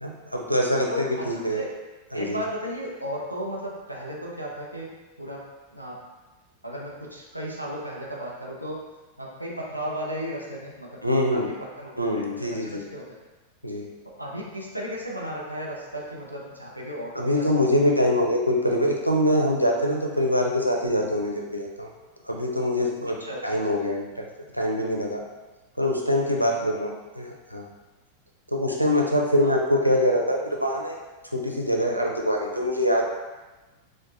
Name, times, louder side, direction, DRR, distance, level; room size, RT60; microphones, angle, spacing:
voice 1, 0.0-1.6 2.1-2.4 11.0-11.5 12.0-12.8 13.6-13.9 17.2-21.9 22.2-23.2 23.4-24.1 24.5-25.2 25.8-27.7 28.5-31.0 31.3-33.1, left 1 dB, 90° left, 0 dB, 0.4 m, -24 dB
voice 2, 0.9-1.7 2.1-6.0 6.6-8.9 9.2-11.0 11.3-13.0 14.2-17.8 23.1-23.8 29.4-29.6, equal, 90° right, -3 dB, 0.6 m, -35 dB
4.5 x 2.1 x 2.5 m, 1.2 s
figure-of-eight pair, 90°, 0 cm